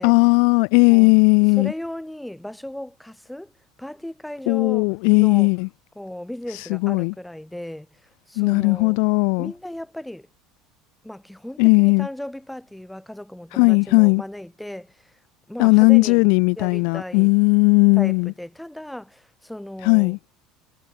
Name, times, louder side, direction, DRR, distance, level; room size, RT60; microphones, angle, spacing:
voice 1, 0.0-1.7 4.5-5.7 6.7-7.1 8.4-9.5 11.6-12.1 13.5-14.2 15.6-18.3 19.8-20.2, left 40 dB or more, 70° left, 0.4 m, -17 dB
voice 2, 1.6-3.5 3.8-4.9 5.2-5.5 6.0-8.0 8.3-9.0 9.4-10.3 11.0-15.2 15.5-16.3 16.6-17.3 18.0-20.2, left 1 dB, 5° left, 2.0 m, -36 dB
supercardioid pair, 110°, 0 cm